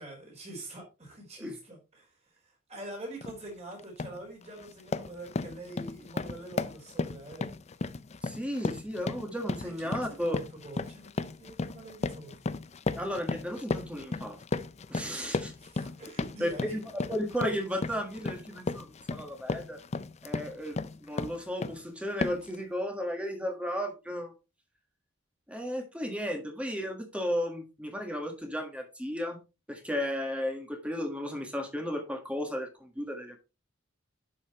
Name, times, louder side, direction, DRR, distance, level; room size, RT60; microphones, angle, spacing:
voice 1, 0.0-2.1 2.5-7.5 9.6-12.6 15.1-15.3 15.6-16.7, right 1 dB, 35° right, -1 dB, 4.2 m, -45 dB
sound 1, 3.2-3.4 3.8-4.2 4.6-21.8 22.2-22.6, left 3 dB, 35° left, 0.4 m, -35 dB
voice 2, 8.2-10.4 12.9-14.4 14.9-15.5 16.4-19.8 20.2-24.3 25.5-29.4 29.7-33.4, equal, 5° right, 4 dB, 1.6 m, -34 dB
11.0 x 5.6 x 3.0 m, 0.28 s
head